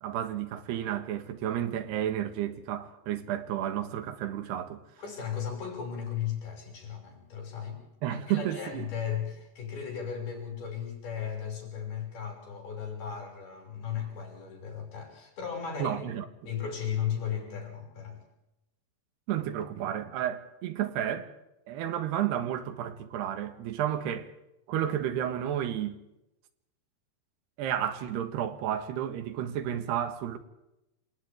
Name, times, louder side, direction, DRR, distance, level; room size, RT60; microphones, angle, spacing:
voice 1, 0.0-4.8 8.0-8.9 15.8-16.3 19.3-21.3 21.7-24.3 24.7-26.0 27.6-30.4, right 10 dB, 90° right, 3.6 m, -31 dB
voice 2, 5.0-7.8 8.1-16.0 16.4-18.2, left 8 dB, 65° left, 8.0 m, -36 dB
28.5 x 27.5 x 3.6 m
omnidirectional pair, 4.7 m